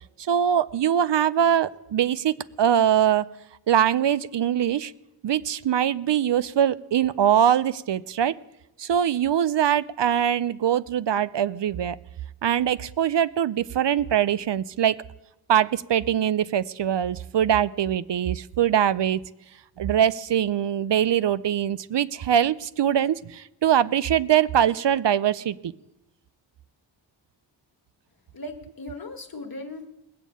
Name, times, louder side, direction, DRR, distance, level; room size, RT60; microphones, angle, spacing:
voice 1, 0.2-3.3 3.7-4.9 5.2-8.4 8.8-12.0 12.4-15.0 15.5-19.2 19.8-25.7, right 9 dB, 70° right, 17 dB, 0.5 m, -22 dB
voice 2, 28.3-29.9, left 1 dB, 50° left, 5 dB, 1.6 m, -37 dB
20.0 x 7.3 x 8.4 m, 0.94 s
wide cardioid pair, 105°, 45 cm